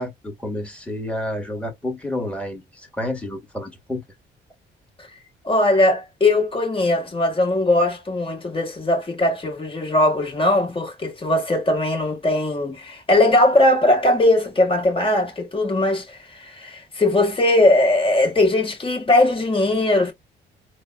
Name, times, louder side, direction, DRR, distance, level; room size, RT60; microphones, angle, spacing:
voice 1, 0.0-4.0, left 1 dB, 5° left, 1.7 m, -30 dB
voice 2, 5.4-20.1, left 1 dB, 25° left, 1.7 m, -19 dB
3.9 x 2.2 x 2.3 m
cardioid pair, 90°, 20 cm